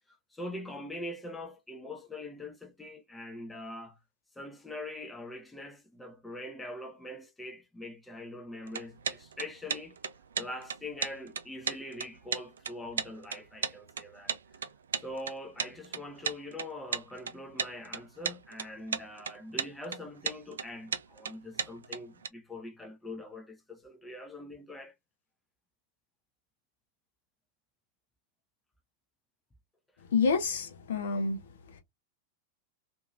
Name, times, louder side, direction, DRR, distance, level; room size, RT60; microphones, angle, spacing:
voice 1, 0.1-4.0 4.4-10.0 10.4-14.3 15.0-24.9, left 1 dB, 10° left, 0.8 m, -43 dB
sound 1, 8.7-22.3, right 6 dB, 70° right, 0.4 m, -35 dB
voice 2, 30.1-31.4, left 5 dB, 60° left, 0.7 m, -28 dB
2.8 x 2.7 x 2.4 m
figure-of-eight pair, 90°, 0 cm